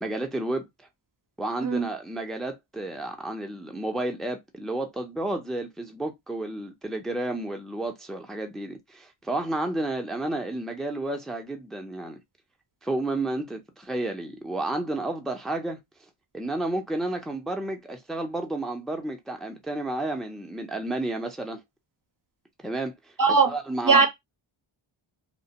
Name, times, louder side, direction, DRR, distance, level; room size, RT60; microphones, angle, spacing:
voice 1, 0.0-0.7 1.4-12.2 12.8-15.8 16.3-21.6 22.6-24.1, right 2 dB, ahead, 0.5 m, -31 dB
voice 2, 23.2-23.5 23.8-24.1, right 4 dB, 40° right, 0.6 m, -19 dB
2.3 x 2.1 x 2.8 m
cardioid pair, 40°, 50 cm